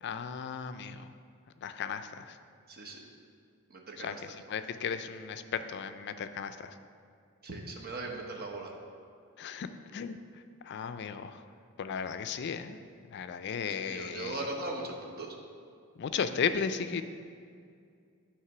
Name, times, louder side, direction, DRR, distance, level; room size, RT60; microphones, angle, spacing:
voice 1, 0.0-1.1 1.6-2.4 4.0-6.8 9.4-11.4 11.8-12.8 13.1-14.4 16.0-17.0, left 6 dB, 50° left, 10 dB, 0.3 m, -35 dB
voice 2, 2.7-3.1 3.7-4.2 7.4-8.7 13.7-15.4, right 2 dB, 45° right, 0 dB, 0.9 m, -39 dB
9.5 x 3.3 x 5.8 m, 2.3 s
head